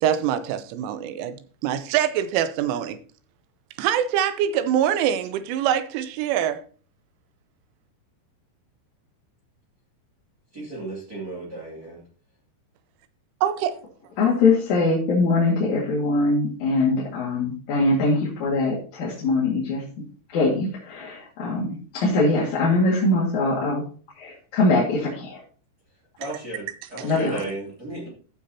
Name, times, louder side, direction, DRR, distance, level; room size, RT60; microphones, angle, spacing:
voice 1, 0.0-1.4 1.6-3.0 3.8-6.6 13.4-13.8 26.2-26.4 27.0-27.1, right 10 dB, 85° right, 3.2 m, -24 dB
voice 2, 10.5-12.0 26.2-26.6 26.9-28.1, right 2 dB, 30° right, 1.9 m, -34 dB
voice 3, 14.2-19.8 20.3-23.8 24.2-25.4 27.0-27.4, left 2 dB, 50° left, 2.6 m, -22 dB
14.5 x 6.5 x 2.8 m
omnidirectional pair, 5.5 m